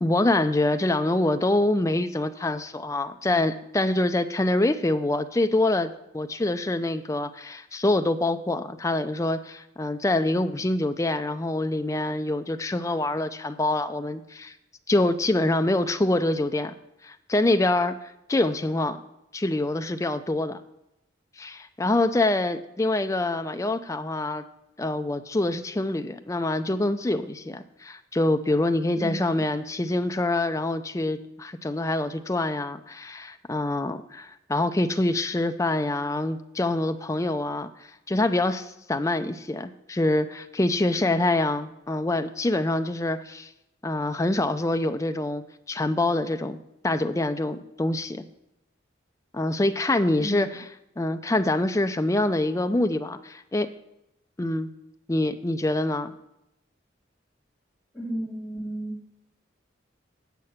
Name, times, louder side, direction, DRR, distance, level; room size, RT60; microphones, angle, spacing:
voice 1, 0.0-14.5 14.9-16.7 17.0-19.0 19.3-20.6 21.4-24.4 24.8-37.7 38.1-43.5 43.8-46.6 46.8-48.2 49.3-50.5 51.0-53.7 54.4-54.7 55.1-56.1, left 2 dB, 15° left, 8 dB, 0.4 m, -25 dB
voice 2, 28.9-29.4 41.0-41.2 50.2-50.6 57.9-59.0, right 1 dB, ahead, -11 dB, 3.9 m, -34 dB
8.2 x 7.5 x 5.8 m, 0.87 s
head